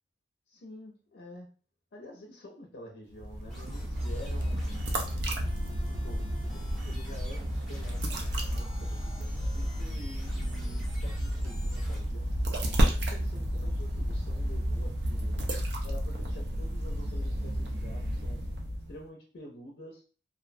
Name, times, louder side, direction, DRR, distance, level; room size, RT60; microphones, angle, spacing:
voice 1, 0.5-1.5 1.9-4.9 5.8-6.3 6.5-15.5 15.8-18.4 18.9-20.0, left 1 dB, 70° left, -1 dB, 0.5 m, -48 dB
sound 1, 3.1-19.0, equal, 70° right, 0.5 m, -31 dB
sound 2, 3.5-12.0, left 1 dB, ahead, 0.6 m, -51 dB
2.6 x 2.0 x 2.5 m, 0.39 s
head